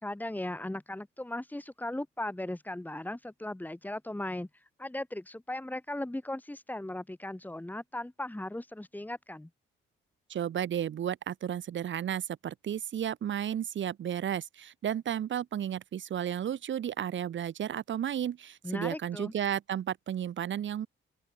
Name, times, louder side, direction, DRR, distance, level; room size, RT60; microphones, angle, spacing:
voice 1, 0.0-4.5 4.8-9.5 18.6-19.3, left 1 dB, 10° left, 4.6 m, -37 dB
voice 2, 10.3-20.9, right 10 dB, 65° right, 4.2 m, -33 dB
open air
cardioid pair, 85°, 21 cm